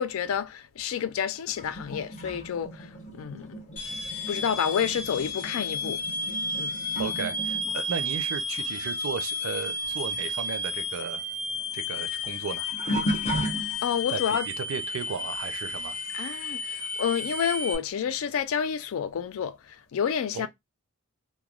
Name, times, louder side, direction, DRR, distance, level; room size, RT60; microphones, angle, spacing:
voice 1, 0.0-3.6 4.3-6.0 6.5-6.8 13.8-14.5 16.1-20.5, left 7 dB, 65° left, 0.3 m, -29 dB
sound 1, 1.6-9.6 9.8-14.2 14.8-15.1 17.3-17.4 18.3-18.4, right 1 dB, 30° left, 0.8 m, -36 dB
sound 2, 3.8-17.8, left 2 dB, 85° left, 0.8 m, -32 dB
voice 2, 7.0-11.2 11.7-12.7 13.1-13.3 14.1-16.0 20.3-20.5, right 6 dB, 60° right, 0.4 m, -35 dB
3.1 x 2.2 x 2.3 m
head